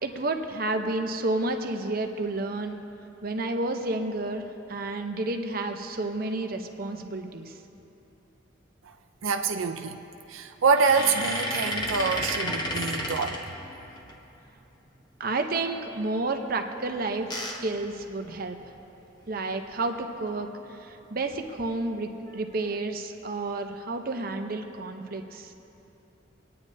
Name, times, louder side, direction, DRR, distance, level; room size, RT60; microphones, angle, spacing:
voice 1, 0.0-2.8 3.2-7.5 15.2-18.6 19.3-25.5, right 2 dB, 45° right, 5 dB, 0.8 m, -31 dB
voice 2, 9.2-10.0 10.3-13.4, right 5 dB, 80° right, 5 dB, 0.5 m, -25 dB
Porta rangendo, 10.6-14.1 16.8-18.7 19.3-19.4 19.6-19.8 21.3-21.7 22.3-22.8, left 1 dB, 20° left, 0.9 m, -33 dB
25.5 x 9.6 x 2.7 m, 2.9 s
head